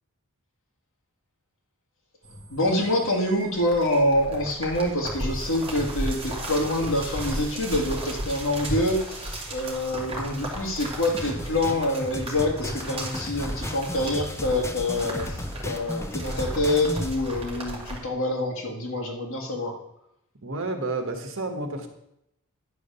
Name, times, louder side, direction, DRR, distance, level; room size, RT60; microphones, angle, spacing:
sound 1, 2.2-18.0, right 1 dB, 25° right, 2.3 m, -35 dB
voice 1, 2.5-19.7, left 1 dB, 60° left, 0 dB, 2.2 m, -26 dB
sound 2, 11.1-17.1, left 1 dB, 10° left, 0.7 m, -35 dB
voice 2, 20.4-21.9, right 2 dB, 60° right, 5 dB, 1.4 m, -30 dB
10.5 x 5.0 x 6.9 m, 0.80 s
head